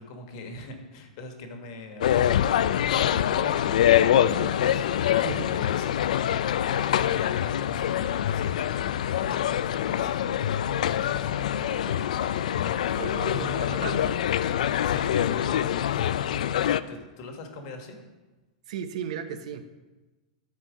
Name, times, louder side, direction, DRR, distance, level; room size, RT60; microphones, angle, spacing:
voice 1, 0.0-6.4 7.0-14.1 14.8-16.6 16.9-18.0, left 3 dB, 45° left, 4 dB, 1.5 m, -42 dB
sound 1, 2.0-16.8, left 10 dB, 80° left, 0.4 m, -25 dB
voice 2, 4.1-4.5 5.2-5.5 12.9-14.1 18.7-19.7, right 8 dB, 65° right, 10 dB, 0.8 m, -36 dB
12.5 x 4.6 x 5.1 m, 1.2 s
supercardioid pair, 165°, 4 cm